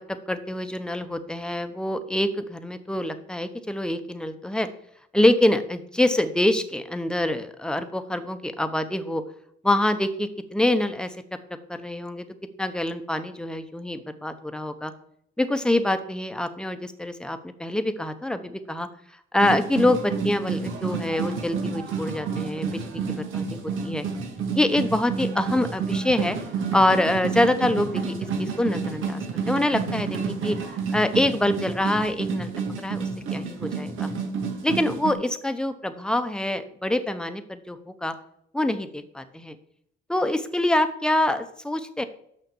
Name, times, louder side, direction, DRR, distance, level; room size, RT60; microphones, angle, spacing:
voice 1, 0.3-4.7 5.1-9.2 9.6-11.1 11.7-12.2 12.6-14.9 15.4-18.9 19.3-23.0 23.3-23.6 23.8-24.0 24.5-26.4 26.7-29.2 29.5-30.6 30.9-32.5 32.8-34.1 34.6-38.1 38.5-39.6 40.1-42.0, left 1 dB, 5° left, 9 dB, 0.9 m, -25 dB
sound 1, 19.4-35.1, right 5 dB, 85° right, 1.8 m, -30 dB
6.6 x 5.8 x 7.2 m, 0.70 s
cardioid pair, 90°, 20 cm